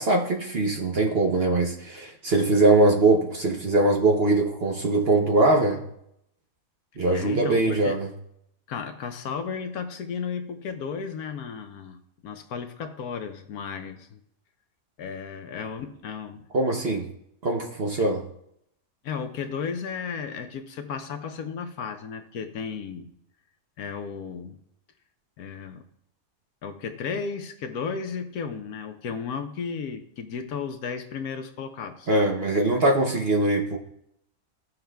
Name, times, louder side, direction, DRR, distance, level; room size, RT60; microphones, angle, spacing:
voice 1, 0.0-5.8 7.0-8.1 16.5-17.1 17.4-18.2 32.1-33.8, right 2 dB, 50° right, 2 dB, 0.9 m, -22 dB
voice 2, 7.1-8.0 8.7-12.0 12.2-14.2 15.0-16.5 18.0-18.1 19.0-23.1 23.8-24.6 25.4-25.8 26.6-32.1, left 6 dB, 70° left, 7 dB, 1.2 m, -34 dB
16.0 x 5.8 x 2.3 m, 0.77 s
omnidirectional pair, 1.7 m